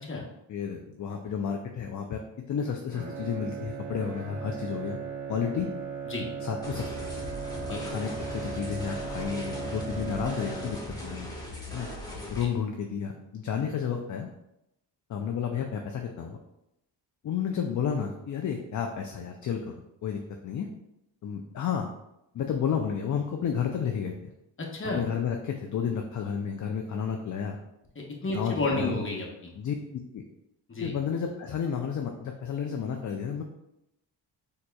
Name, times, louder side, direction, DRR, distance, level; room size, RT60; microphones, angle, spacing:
voice 1, 0.5-2.2 2.5-5.0 5.3-5.7 6.4-7.1 7.7-11.3 11.7-11.9 12.3-14.3 15.1-16.4 17.2-19.7 20.0-20.7 21.2-21.9 22.3-24.3 24.9-27.6 28.3-28.9 29.6-30.2 30.8-33.4, left 7 dB, 40° left, 3 dB, 0.4 m, -31 dB
Bowed string instrument, 2.9-11.2, right 5 dB, 40° right, 1.0 m, -37 dB
sound 1, 6.6-12.4, left 1 dB, 10° left, 1.1 m, -39 dB
voice 2, 24.6-25.0 27.9-29.5 30.7-30.9, left 2 dB, 25° left, -1 dB, 0.9 m, -31 dB
4.2 x 2.9 x 2.3 m, 0.84 s
cardioid pair, 65°, 47 cm